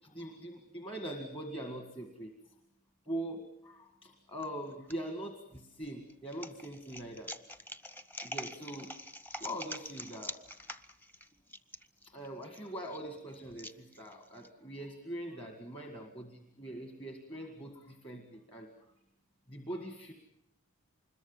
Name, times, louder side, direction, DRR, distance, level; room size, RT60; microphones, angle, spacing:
voice 1, 0.0-2.3 3.1-7.4 8.2-8.9 9.4-10.4 12.0-18.7 19.5-20.1, right 1 dB, 25° left, 5 dB, 1.9 m, -42 dB
sound 1, 4.4-4.9 5.5-14.5, equal, 10° left, 0.9 m, -45 dB
26.0 x 21.5 x 7.3 m, 0.79 s
head